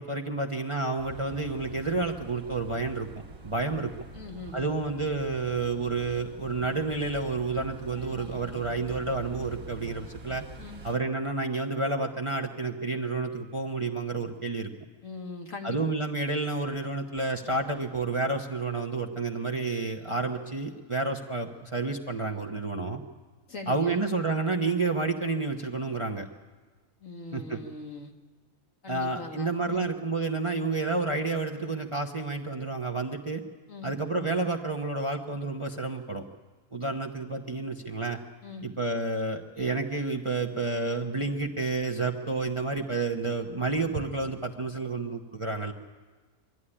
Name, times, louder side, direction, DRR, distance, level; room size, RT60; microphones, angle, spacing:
voice 1, 0.0-3.1 3.4-3.9 4.5-10.4 10.8-14.7 15.6-23.0 23.7-26.3 27.3-27.6 28.9-33.4 33.8-36.2 36.7-38.2 38.6-45.7, right 3 dB, 25° right, 3 dB, 0.9 m, -30 dB
sound 1, 1.0-11.0, right 1 dB, 55° right, 2.0 m, -45 dB
voice 2, 4.1-4.8 10.6-10.8 15.0-15.8 23.5-24.1 27.0-28.1 28.8-29.9 33.7-33.9 38.4-38.7, left 3 dB, 60° left, 2 dB, 2.0 m, -40 dB
23.0 x 13.0 x 9.9 m, 1.4 s
omnidirectional pair, 1.6 m